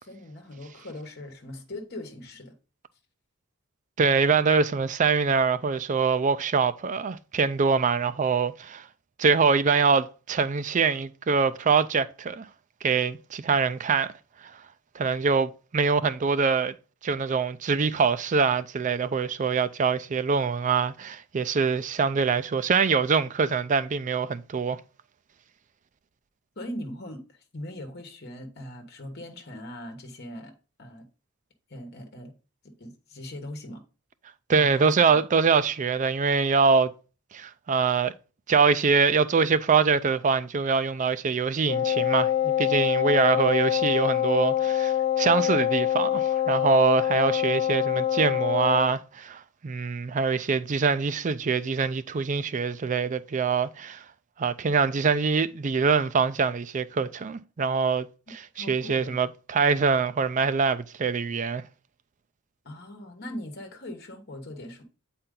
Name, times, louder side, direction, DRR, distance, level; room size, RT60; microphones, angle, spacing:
voice 1, 0.0-2.5 26.6-30.5 30.8-31.1 31.7-32.3 32.6-33.8 34.5-35.2 58.6-59.2 62.6-64.8, left 1 dB, 50° left, 1.2 m, -40 dB
voice 2, 4.0-8.8 9.2-12.5 12.8-14.1 15.0-16.7 17.0-24.8 34.5-36.9 37.3-38.1 38.5-54.0 54.4-61.6, right 5 dB, 35° right, 0.4 m, -24 dB
Wind instrument woodwind instrument, 41.7-49.0, left 11 dB, 30° left, 0.7 m, -25 dB
7.8 x 4.3 x 3.7 m
head